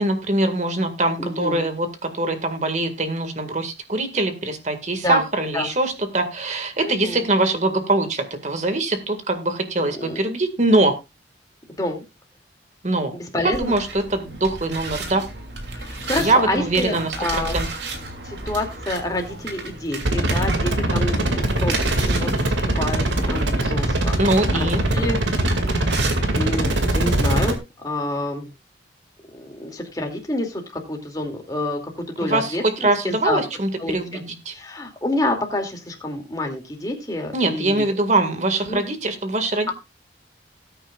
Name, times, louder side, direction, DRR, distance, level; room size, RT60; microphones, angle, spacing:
voice 1, 0.0-10.9 12.8-13.1 13.4-15.2 16.2-17.7 24.2-24.8 32.2-34.5 37.3-39.7, right 2 dB, 40° right, 8 dB, 1.9 m, -22 dB
voice 2, 1.2-1.7 5.0-5.2 5.5-5.7 6.8-7.3 9.8-10.2 11.8-12.0 13.1-13.7 15.7-17.6 18.2-24.1 24.5-25.2 25.5-26.0 26.3-28.5 29.3-31.8 32.2-33.4 33.8-34.2 34.5-37.9 38.6-38.8, left 1 dB, 20° left, 3 dB, 2.6 m, -28 dB
sound 1, 13.5-26.7, right 3 dB, 65° right, 2.9 m, -33 dB
sound 2, 20.0-27.6, right 1 dB, 85° right, 2.3 m, -21 dB
19.0 x 9.0 x 2.4 m, 0.25 s
head